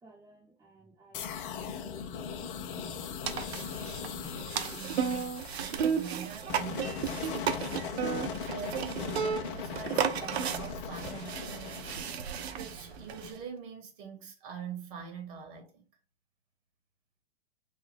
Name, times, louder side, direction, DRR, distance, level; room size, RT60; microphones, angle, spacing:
voice 1, 0.0-3.2, right 4 dB, 10° right, 1.0 m, -55 dB
sound 1, 1.1-12.9, left 7 dB, 50° left, 0.6 m, -40 dB
sound 2, 3.2-13.4, right 7 dB, 75° right, 0.6 m, -34 dB
voice 2, 4.7-7.1 7.6-12.1 12.5-15.8, right 7 dB, 50° right, 1.6 m, -44 dB
3.9 x 2.2 x 3.4 m
hypercardioid pair, 105°, 33 cm